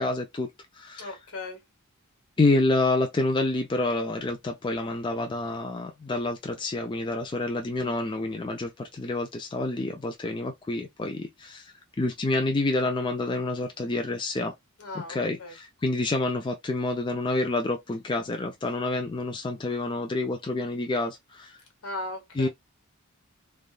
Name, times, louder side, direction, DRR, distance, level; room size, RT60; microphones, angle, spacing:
voice 1, 0.0-1.1 2.4-14.6 15.0-21.6 22.4-22.5, left 2 dB, 20° left, 0.4 m, -28 dB
voice 2, 1.0-1.6 14.8-15.5 21.8-22.5, left 2 dB, 70° left, 1.3 m, -37 dB
3.4 x 2.3 x 2.4 m
head